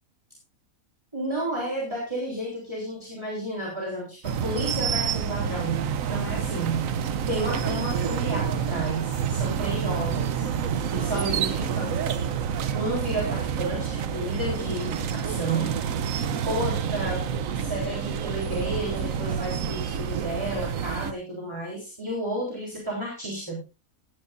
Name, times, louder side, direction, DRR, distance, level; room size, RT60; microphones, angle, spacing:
voice 1, 1.1-6.9 7.3-10.5 10.9-12.2 12.7-15.8 16.5-17.3 17.5-23.6, right 1 dB, 20° right, -3 dB, 3.8 m, -32 dB
sound 1, 4.2-21.1, right 7 dB, 65° right, 1.2 m, -28 dB
17.5 x 9.9 x 2.6 m, 0.27 s
omnidirectional pair, 1.5 m